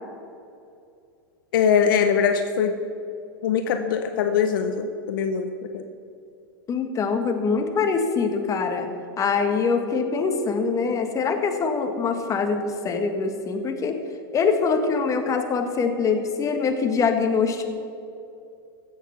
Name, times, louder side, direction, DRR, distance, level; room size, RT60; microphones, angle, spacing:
voice 1, 1.5-2.7 3.4-5.8, left 7 dB, 65° left, 7 dB, 0.8 m, -22 dB
voice 2, 6.7-8.9 9.2-14.0 14.3-17.6, left 5 dB, 25° left, 6 dB, 1.5 m, -24 dB
15.5 x 7.1 x 5.7 m, 2.5 s
hypercardioid pair, 95°, 12 cm